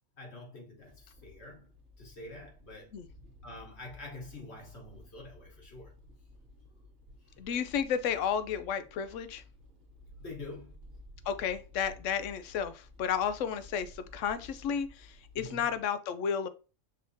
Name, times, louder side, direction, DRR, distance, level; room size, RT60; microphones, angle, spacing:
voice 1, 0.2-1.7 2.0-3.0 3.4-5.9 10.2-10.7 15.3-15.7, left 2 dB, 60° left, 1.6 m, -46 dB
sound 1, 0.8-15.8, left 1 dB, 50° right, 1.1 m, -54 dB
voice 2, 7.4-9.4 11.3-16.5, left 7 dB, 85° left, 0.9 m, -32 dB
5.3 x 3.5 x 2.6 m
omnidirectional pair, 1.3 m